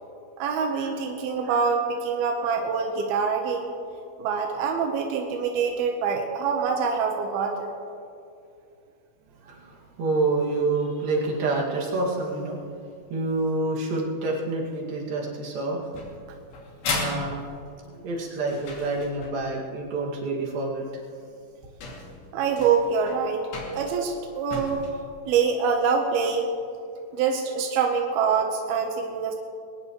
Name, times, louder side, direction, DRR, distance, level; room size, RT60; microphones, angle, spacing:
voice 1, 0.4-3.7 4.2-7.7 22.3-23.5 23.7-24.9 25.3-26.5 27.1-29.3, right 5 dB, 80° right, 2 dB, 2.2 m, -25 dB
voice 2, 9.4-12.6 13.1-15.9 16.9-17.3 17.8-20.8, right 2 dB, 50° right, -3 dB, 3.3 m, -27 dB
sound 1, 15.9-19.6 20.9-21.0 21.5-21.6 21.8-24.9, left 3 dB, 55° left, 3.9 m, -35 dB
22.0 x 18.5 x 3.2 m, 2.5 s
omnidirectional pair, 6.0 m